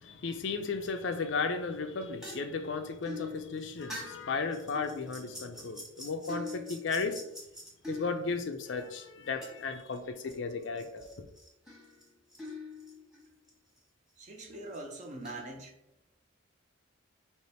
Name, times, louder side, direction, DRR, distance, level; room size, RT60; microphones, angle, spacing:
voice 1, 0.0-7.2 7.9-11.2, left 4 dB, 60° left, 0.4 m, -35 dB
sound 1, 1.8-8.8 9.4-10.3 10.6-13.5 13.8-13.9 14.5-15.5, left 2 dB, ahead, 1.2 m, -45 dB
voice 2, 14.2-15.7, right 2 dB, 35° right, 0.7 m, -43 dB
3.3 x 3.0 x 4.3 m
head